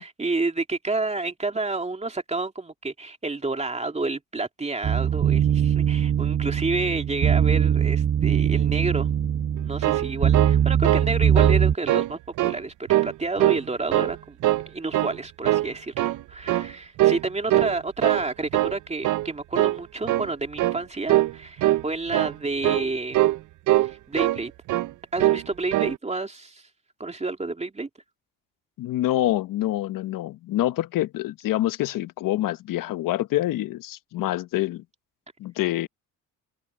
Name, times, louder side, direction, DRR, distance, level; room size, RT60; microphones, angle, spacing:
voice 1, 0.0-9.1 9.6-14.4 14.7-23.2 23.8-24.5 25.1-26.6 27.0-27.9, right 3 dB, 20° right, 2.8 m, -30 dB
sound 1, 4.8-11.8, right 9 dB, 40° right, 1.1 m, -21 dB
sound 2, 9.6-11.1 11.4-11.6 11.9-12.6 12.9-13.6 13.9-14.7 14.9-15.2 15.4-16.2 16.5-16.7 17.0-17.2 17.5-18.2 18.5-18.8 19.0-19.3 19.5-19.8 20.1-20.3 20.6-20.8 21.1-21.3 21.6-21.8 22.1-22.3 22.6-22.9 23.1-23.4 23.7-24.4 24.7-24.9 25.2-25.4 25.7-26.0, right 15 dB, 60° right, 0.6 m, -22 dB
voice 2, 28.8-34.8 35.4-35.9, left 14 dB, 70° left, 1.3 m, -26 dB
cardioid pair, 85°, 34 cm